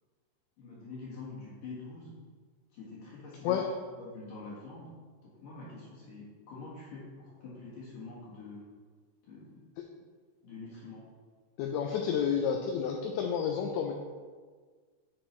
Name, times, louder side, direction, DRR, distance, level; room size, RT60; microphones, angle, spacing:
voice 1, 0.6-2.2 2.7-3.6 4.0-4.9 5.2-8.6 9.2-9.6 10.4-11.0, left 3 dB, 60° left, -7 dB, 2.4 m, -45 dB
voice 2, 11.6-13.9, left 7 dB, 85° left, 2 dB, 2.6 m, -30 dB
10.5 x 5.6 x 3.2 m, 1.5 s
omnidirectional pair, 5.8 m